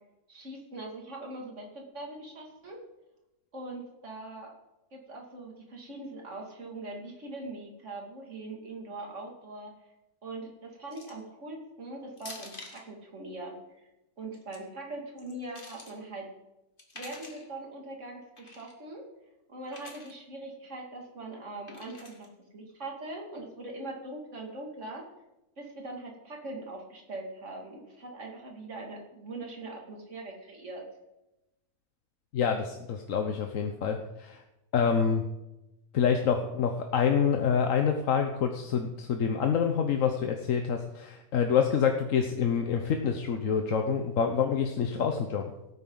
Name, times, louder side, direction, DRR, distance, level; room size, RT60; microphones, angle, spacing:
voice 1, 0.3-2.8 3.5-4.5 4.9-9.7 10.2-13.5 14.2-16.3 16.9-19.0 19.5-25.0 25.6-30.8, right 2 dB, 50° right, 0 dB, 2.7 m, -41 dB
sound 1, 10.9-11.3 12.2-12.9 14.2-14.6 15.2-15.9 16.8-17.5 18.4-18.7 19.7-20.1 21.7-22.3, left 2 dB, 35° left, 2.0 m, -47 dB
voice 2, 32.3-34.4 34.7-35.2 35.9-45.4, left 7 dB, 60° left, 4 dB, 1.2 m, -27 dB
17.0 x 9.5 x 3.9 m, 0.95 s
omnidirectional pair, 1.6 m